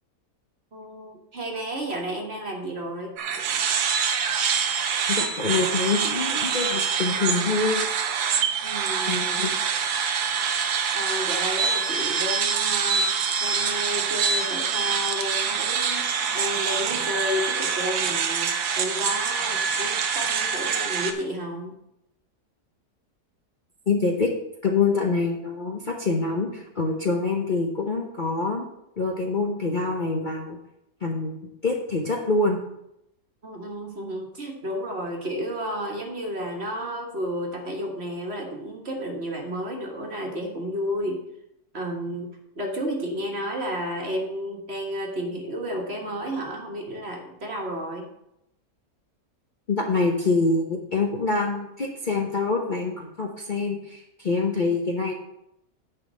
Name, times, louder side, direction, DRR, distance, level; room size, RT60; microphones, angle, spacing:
voice 1, 0.7-3.2 8.6-9.2 10.9-13.1 13.4-21.8 33.4-41.2 41.7-42.3 42.6-48.1, equal, 40° right, 0 dB, 1.8 m, -32 dB
sound 1, 3.2-21.1, right 6 dB, 80° right, 1.4 m, -25 dB
voice 2, 5.1-7.8 9.1-9.5 23.9-24.3 24.6-28.6 29.0-30.6 31.0-32.6 49.7-55.1, left 3 dB, 40° left, 0 dB, 0.8 m, -25 dB
9.7 x 4.1 x 7.4 m, 0.81 s
omnidirectional pair, 1.7 m